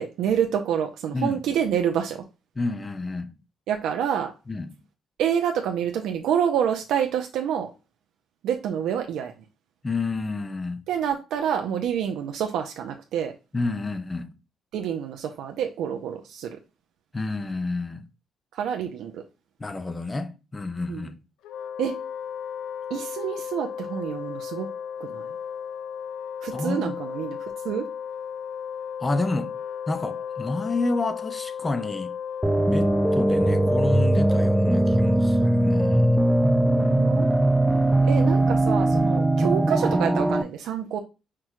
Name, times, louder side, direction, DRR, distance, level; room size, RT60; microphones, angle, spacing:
voice 1, 0.0-2.2 3.7-4.3 5.2-7.7 8.4-9.3 10.9-13.3 14.7-16.6 18.5-19.2 20.9-21.0 21.8-22.0 22.9-24.7 25.0-25.2 26.4-27.4 27.6-27.9 36.7-37.3 38.0-41.0, right 8 dB, 85° right, 0.5 m, -27 dB
voice 2, 2.6-3.3 4.5-4.7 9.8-10.8 13.5-14.3 17.1-18.1 19.6-21.2 26.5-26.9 29.0-29.6 29.9-32.1 32.7-36.3, left 3 dB, 25° left, 0.7 m, -29 dB
Wind instrument woodwind instrument, 21.4-34.8, left 8 dB, 85° left, 0.4 m, -35 dB
sound 1, 32.4-40.4, right 1 dB, 10° right, 0.3 m, -20 dB
5.9 x 2.3 x 3.0 m
cardioid pair, 90°, 0 cm